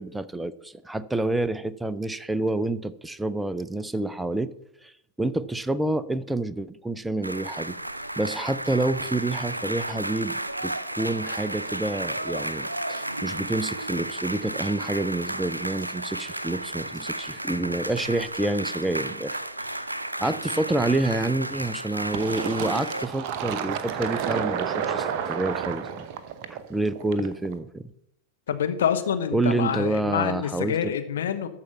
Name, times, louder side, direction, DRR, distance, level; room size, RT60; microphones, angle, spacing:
voice 1, 0.0-4.5 4.8-4.9 5.2-7.8 8.2-19.4 20.2-26.1 26.5-27.9 29.3-30.9, right 2 dB, 5° right, 15 dB, 0.4 m, -28 dB
sound 1, 7.2-23.0, right 1 dB, 85° right, 0.5 m, -33 dB
Fill (with liquid), 22.1-27.5, right 8 dB, 45° right, 0.8 m, -30 dB
voice 2, 28.5-31.5, left 8 dB, 60° left, 8 dB, 0.9 m, -26 dB
13.5 x 4.5 x 5.6 m, 0.81 s
figure-of-eight pair, 90°, 0 cm